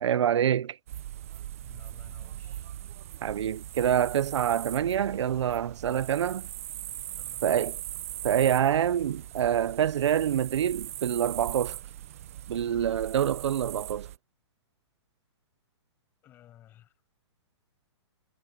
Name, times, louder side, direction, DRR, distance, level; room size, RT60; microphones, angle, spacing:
voice 1, 0.0-0.8 3.2-6.5 7.4-7.7 8.2-11.8 12.5-14.1, right 9 dB, 85° right, 0.5 m, -26 dB
sound 1, 0.9-14.2, right 13 dB, 30° right, 0.7 m, -40 dB
voice 2, 1.6-2.7 7.0-7.6 10.3-10.4 16.2-16.9, left 12 dB, 15° left, 6.9 m, -56 dB
hypercardioid pair, 180°, 15 cm